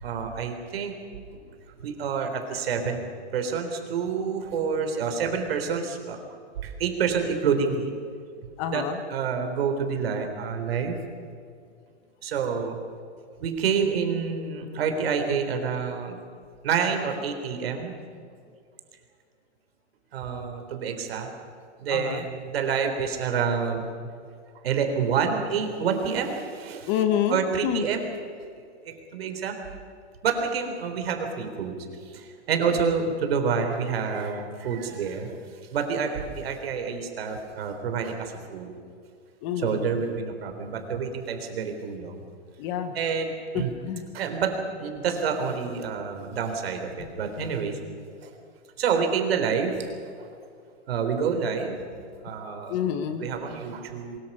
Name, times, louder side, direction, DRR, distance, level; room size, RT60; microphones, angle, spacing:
voice 1, 0.0-0.9 1.3-1.4 1.8-3.0 3.3-6.2 6.6-7.9 8.7-8.8 9.1-11.0 12.2-12.8 13.4-16.2 16.6-18.0 20.1-21.3 21.8-23.9 24.6-27.0 27.3-28.1 28.6-29.6 30.2-31.8 32.1-35.3 35.7-38.7 39.6-42.2 42.9-43.7 44.1-47.8 48.2-48.3 48.8-49.7 50.2-50.3 50.9-51.8 52.2-52.8 53.2-54.2, right 6 dB, 60° right, 5 dB, 3.7 m, -28 dB
voice 2, 8.6-9.0 21.9-22.2 26.9-27.9 39.4-39.9 42.6-42.9 43.5-44.0 52.7-53.2, left 9 dB, 25° left, 8 dB, 1.1 m, -28 dB
23.0 x 21.5 x 5.5 m, 2.2 s
hypercardioid pair, 160°, 34 cm